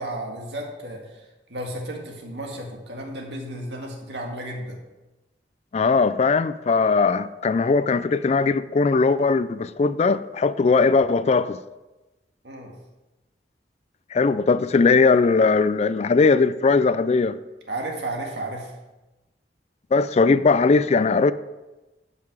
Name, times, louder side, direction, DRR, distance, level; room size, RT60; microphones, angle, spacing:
voice 1, 0.0-4.8 12.4-12.8 17.7-18.7, right 1 dB, 75° right, 1.9 m, -33 dB
voice 2, 5.7-11.6 14.1-17.4 19.9-21.3, left 4 dB, 40° left, 0.3 m, -19 dB
12.0 x 5.8 x 4.8 m
head